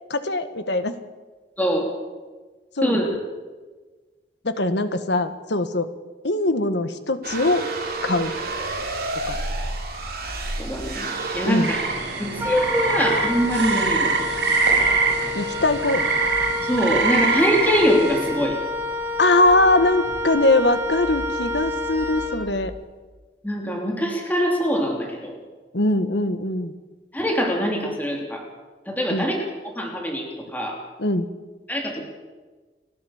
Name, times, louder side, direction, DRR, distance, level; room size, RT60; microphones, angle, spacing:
voice 1, 0.1-1.0 2.8-3.0 4.4-5.9 6.2-7.6 8.0-8.3 9.3-9.4 11.4-11.7 15.3-16.0 19.2-22.7 25.7-26.7 29.1-29.3 31.0-31.3, left 2 dB, 75° left, 10 dB, 1.5 m, -21 dB
voice 2, 1.6-1.9 2.8-3.1 10.6-11.8 12.2-14.1 16.7-18.6 23.4-25.4 27.1-28.4 28.9-29.4 29.6-30.2 30.5-30.7 31.7-32.0, equal, 10° left, 1 dB, 3.1 m, -23 dB
sound 1, 7.2-16.1, right 2 dB, 55° right, 4.8 m, -32 dB
sound 2, 11.6-18.3, right 4 dB, 70° right, 5.9 m, -23 dB
Wind instrument woodwind instrument, 12.4-22.8, left 2 dB, 15° right, 2.6 m, -29 dB
30.0 x 12.0 x 7.2 m, 1.3 s
head